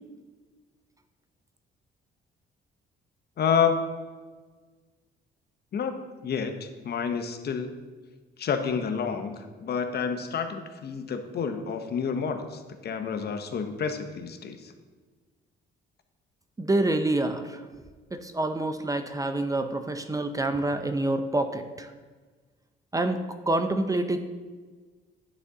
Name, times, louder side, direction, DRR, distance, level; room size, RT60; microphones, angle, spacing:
voice 1, 3.4-4.0 5.7-7.7 8.4-14.7, left 6 dB, 55° left, 7 dB, 0.7 m, -29 dB
voice 2, 16.6-17.7 18.1-21.9 22.9-24.2, right 2 dB, 15° right, 8 dB, 0.5 m, -27 dB
9.6 x 3.9 x 3.7 m, 1.4 s
cardioid pair, 90°, 20 cm